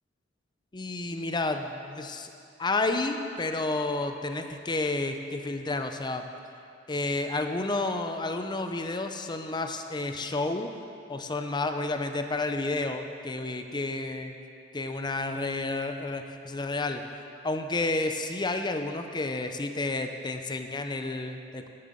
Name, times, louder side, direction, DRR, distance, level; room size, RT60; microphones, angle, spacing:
voice 1, 0.7-2.3 2.6-6.3 6.9-10.7 11.1-14.3 14.7-17.0 17.4-21.7, left 2 dB, 25° left, 6 dB, 0.6 m, -30 dB
10.5 x 7.7 x 7.7 m, 2.5 s
head